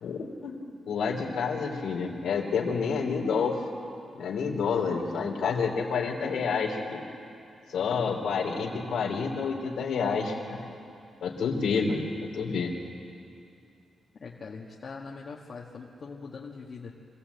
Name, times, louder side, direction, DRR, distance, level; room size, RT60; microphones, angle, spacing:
voice 1, 0.0-0.6 0.9-3.6 4.2-7.0 7.7-10.6 11.2-12.0 12.3-12.7, left 5 dB, 85° left, 0 dB, 2.9 m, -29 dB
voice 2, 14.2-16.9, left 4 dB, 45° left, -2 dB, 1.5 m, -42 dB
25.0 x 16.0 x 8.1 m, 2.6 s
wide cardioid pair, 150°, 0 cm